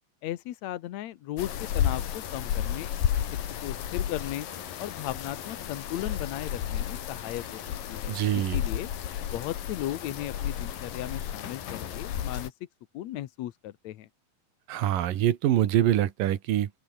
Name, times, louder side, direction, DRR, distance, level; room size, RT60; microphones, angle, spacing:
voice 1, 0.2-2.9 3.6-4.5 4.8-7.6 7.9-8.9 9.3-12.5 12.9-14.1, left 13 dB, 65° left, 2.1 m, -36 dB
sound 1, 1.4-12.5, left 10 dB, 90° left, 3.7 m, -32 dB
voice 2, 8.1-8.6 14.7-16.7, right 12 dB, 85° right, 3.2 m, -24 dB
open air
omnidirectional pair, 3.8 m